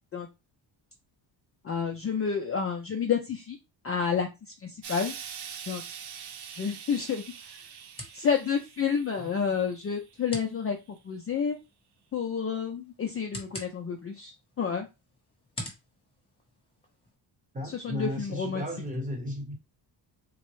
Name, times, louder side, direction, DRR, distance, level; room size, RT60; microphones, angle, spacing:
voice 1, 1.6-3.6 3.8-5.1 5.7-5.8 6.5-7.7 8.1-10.8 11.0-11.6 12.1-14.9 17.6-18.6, left 6 dB, 35° left, 0.4 m, -30 dB
Explosion, 4.8-10.1 11.0-11.1, right 8 dB, 60° right, 0.7 m, -43 dB
sound 1, 6.2-17.2, left 1 dB, 10° left, 0.8 m, -48 dB
voice 2, 17.5-19.6, left 1 dB, 20° right, 0.9 m, -35 dB
3.7 x 2.1 x 3.0 m
wide cardioid pair, 175°, 45 cm